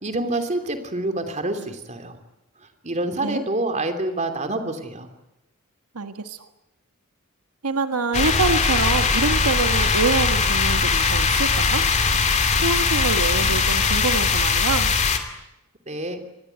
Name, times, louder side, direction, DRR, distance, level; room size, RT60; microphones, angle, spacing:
voice 1, 0.0-2.1 2.8-5.1 15.9-16.2, right 2 dB, 30° right, 7 dB, 3.0 m, -27 dB
voice 2, 5.9-6.4 7.6-11.8 12.6-14.9, right 3 dB, 85° right, 8 dB, 1.6 m, -25 dB
sound 1, 8.1-15.2, left 4 dB, 30° left, 2.7 m, -20 dB
26.5 x 20.5 x 9.5 m, 0.92 s
head